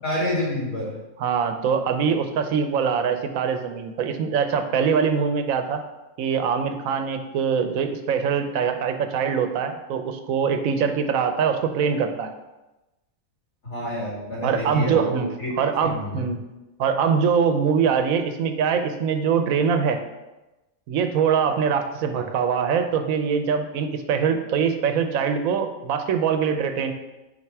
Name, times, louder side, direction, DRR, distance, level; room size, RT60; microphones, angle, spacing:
voice 1, 0.0-0.9 13.6-15.5 15.8-16.2 22.1-22.2, left 1 dB, 85° left, -6 dB, 2.9 m, -28 dB
voice 2, 1.2-5.8 6.2-12.3 14.4-15.3 15.6-16.4 16.8-20.0 20.9-26.9, right 6 dB, 90° right, 7 dB, 1.1 m, -23 dB
5.9 x 4.6 x 4.7 m, 1.0 s
omnidirectional pair, 1.4 m